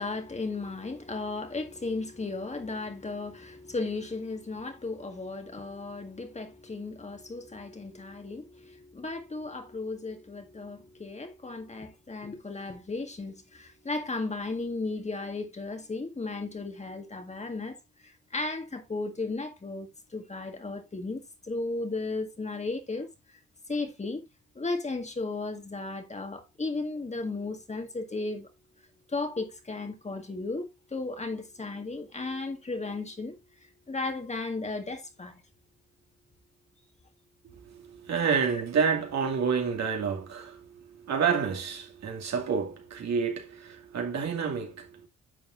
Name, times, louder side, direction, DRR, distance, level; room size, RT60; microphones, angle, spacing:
voice 1, 0.0-17.8 18.0-23.1 23.7-24.2 24.6-28.5 29.1-35.4, left 3 dB, 20° left, 1.9 m, -35 dB
voice 2, 37.4-45.1, right 6 dB, 60° right, 2.6 m, -29 dB
10.5 x 7.0 x 2.6 m
cardioid pair, 90°, 30 cm